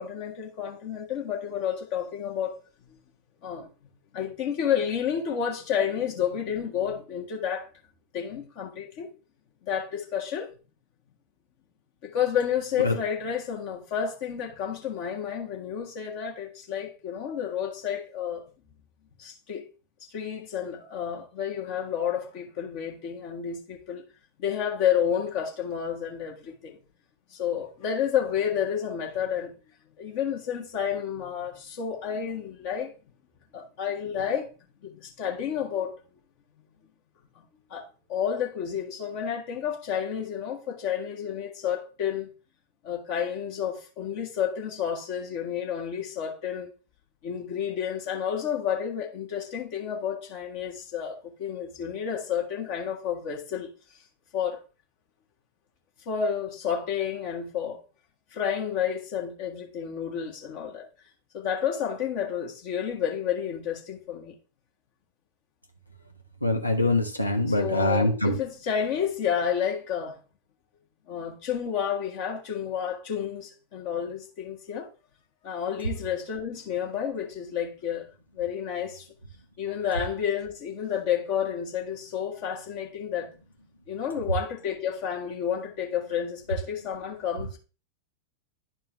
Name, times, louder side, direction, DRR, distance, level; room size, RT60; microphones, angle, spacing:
voice 1, 0.0-2.6 3.4-3.7 4.1-7.7 8.1-9.1 9.6-10.5 12.0-18.4 19.2-19.6 20.1-24.0 24.4-26.8 27.3-29.5 30.0-32.9 33.5-34.5 34.8-36.0 37.3-37.4 37.7-37.8 38.1-42.3 42.8-46.7 47.2-53.7 54.3-54.6 56.0-57.8 58.3-60.9 61.3-64.3 67.5-70.2 71.1-74.9 75.4-78.1 78.3-79.1 79.6-83.3 83.9-87.6, left 8 dB, 45° left, 1.6 m, -30 dB
voice 2, 66.4-68.3, left 1 dB, 85° left, 1.2 m, -24 dB
10.5 x 4.4 x 3.3 m
figure-of-eight pair, 90°, 0 cm